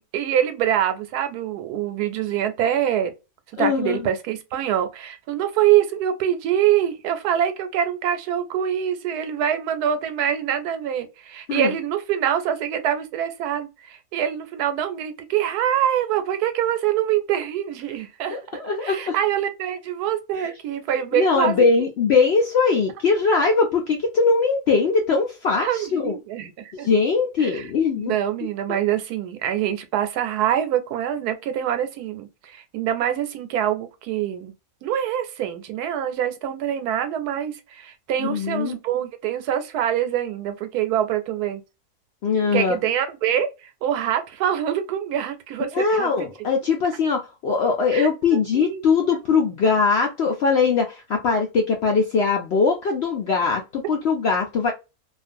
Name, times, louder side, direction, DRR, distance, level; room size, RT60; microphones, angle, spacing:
voice 1, 0.0-3.1 3.6-18.4 18.8-21.7 25.6-26.9 27.4-27.7 27.9-34.5 34.8-41.6 42.5-46.6 47.9-48.8, right 10 dB, 85° right, 1.1 m, -25 dB
voice 2, 3.6-4.0 11.5-11.7 18.3-19.1 20.3-20.5 21.1-26.2 26.8-28.1 28.7-28.8 38.2-38.7 42.2-42.7 45.7-54.7, left 4 dB, 70° left, 0.6 m, -21 dB
2.4 x 2.4 x 2.5 m
omnidirectional pair, 1.6 m